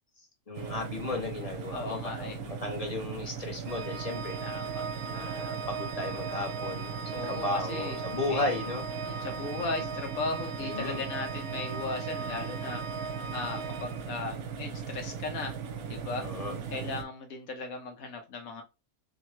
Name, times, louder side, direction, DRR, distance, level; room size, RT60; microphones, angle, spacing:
voice 1, 0.5-4.4 5.1-6.9 7.3-8.8 10.6-11.0 16.2-16.6, left 2 dB, 30° left, 0.8 m, -35 dB
sound 1, 0.5-17.0, right 7 dB, 80° right, 1.1 m, -39 dB
voice 2, 1.7-2.4 4.4-4.9 7.1-8.0 8.3-8.5 9.0-12.8 13.3-15.6 15.8-16.3 16.7-18.6, left 3 dB, 75° left, 1.1 m, -37 dB
Organ, 3.7-14.5, right 5 dB, 65° right, 0.7 m, -39 dB
sound 2, 3.9-10.8, left 3 dB, 55° left, 1.3 m, -52 dB
4.8 x 2.1 x 3.1 m
omnidirectional pair, 1.5 m